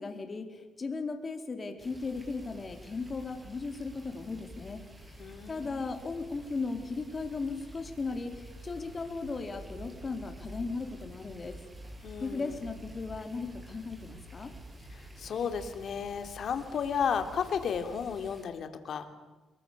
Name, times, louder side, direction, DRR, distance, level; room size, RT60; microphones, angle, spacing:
voice 1, 0.0-11.5 12.2-14.5, left 4 dB, 35° left, 6 dB, 4.2 m, -37 dB
sound 1, 1.8-18.4, right 1 dB, 25° right, 7.6 m, -49 dB
voice 2, 5.2-5.8 12.0-12.5 14.9-19.1, left 7 dB, 60° left, 8 dB, 3.1 m, -33 dB
28.5 x 22.0 x 7.0 m, 1.2 s
cardioid pair, 90°, 0 cm